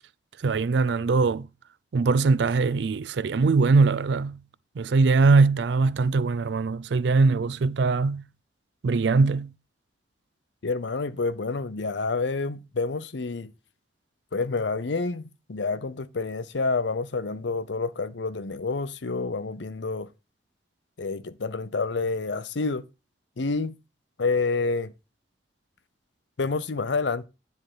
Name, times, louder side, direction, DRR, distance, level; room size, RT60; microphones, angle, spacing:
voice 1, 0.4-1.5 1.9-4.4 4.8-8.2 8.8-9.5, right 4 dB, 70° right, 0.4 m, -21 dB
voice 2, 10.6-13.5 14.3-20.1 21.0-22.8 23.4-23.8 24.2-24.9 26.4-27.3, left 3 dB, 80° left, 0.7 m, -28 dB
10.0 x 3.5 x 6.1 m
head